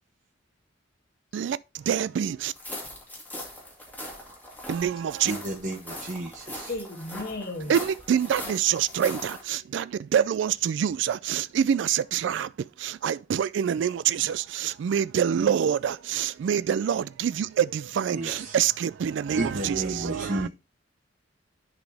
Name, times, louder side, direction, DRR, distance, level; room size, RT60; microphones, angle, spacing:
voice 1, 1.3-2.5 4.7-5.3 7.7-20.5, right 8 dB, 70° right, 0.3 m, -26 dB
sound 1, 2.5-9.4, left 1 dB, 10° left, 2.1 m, -40 dB
voice 2, 5.2-6.7 18.1-18.6 19.4-20.5, right 2 dB, 45° right, 1.2 m, -32 dB
voice 3, 6.7-7.7, left 2 dB, 55° left, 2.2 m, -34 dB
10.5 x 4.1 x 3.3 m
head